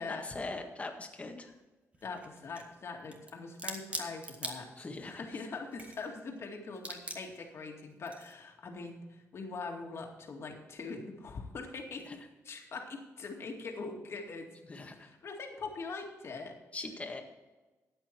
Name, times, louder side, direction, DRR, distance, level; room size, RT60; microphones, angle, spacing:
voice 1, 0.0-1.5 4.8-5.3 12.1-12.2 14.7-15.1 16.7-17.2, left 3 dB, 25° left, 4 dB, 1.8 m, -41 dB
sound 1, 1.1-1.2 1.9-2.7 3.1-5.1 5.5-6.4 6.7-7.5 8.0-8.4, right 2 dB, 25° right, 1.7 m, -42 dB
voice 2, 2.0-16.6, left 4 dB, 55° left, 2 dB, 2.2 m, -42 dB
13.0 x 8.9 x 4.5 m, 1.2 s
cardioid pair, 110°, 5 cm